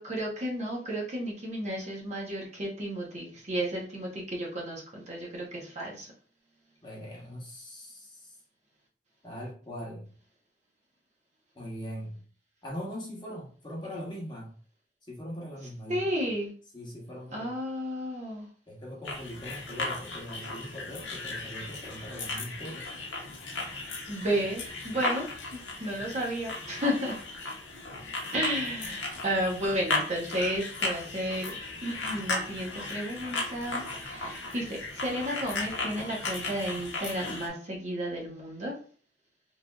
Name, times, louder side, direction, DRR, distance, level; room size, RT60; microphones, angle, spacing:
voice 1, 0.0-6.1 15.9-16.5 17.3-18.5 24.1-27.2 28.3-31.5 31.8-38.8, equal, 35° right, -2 dB, 0.7 m, -32 dB
voice 2, 6.8-8.3 9.2-10.1 11.5-12.2 12.6-14.5 15.1-16.3 16.7-17.5 18.7-22.9, equal, 25° left, -3 dB, 0.8 m, -41 dB
sound 1, 19.0-37.5, left 3 dB, 75° left, 0.7 m, -36 dB
3.2 x 2.4 x 2.2 m, 0.43 s
head